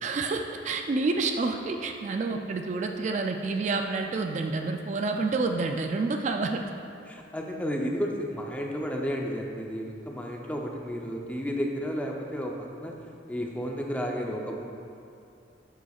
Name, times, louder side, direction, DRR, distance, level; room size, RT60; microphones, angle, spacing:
voice 1, 0.0-6.6, right 3 dB, 40° right, 4 dB, 0.3 m, -28 dB
voice 2, 7.1-12.9 13.3-14.6, equal, 10° left, 0 dB, 0.6 m, -32 dB
10.5 x 7.1 x 2.4 m, 2.6 s
head